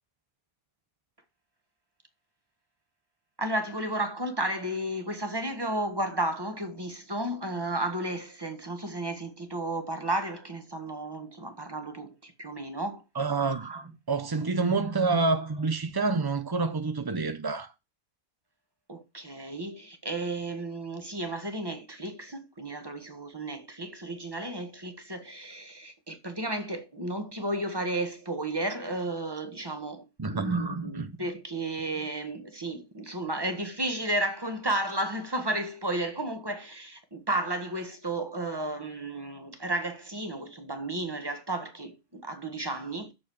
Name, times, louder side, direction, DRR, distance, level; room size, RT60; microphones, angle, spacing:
voice 1, 3.4-13.0 13.4-13.8 14.9-15.2 18.9-43.1, right 1 dB, 15° right, 1.5 m, -33 dB
voice 2, 13.1-13.7 14.1-17.7 30.2-30.6 31.0-31.1, right 3 dB, 40° right, 0.3 m, -28 dB
6.6 x 5.6 x 7.0 m
omnidirectional pair, 1.5 m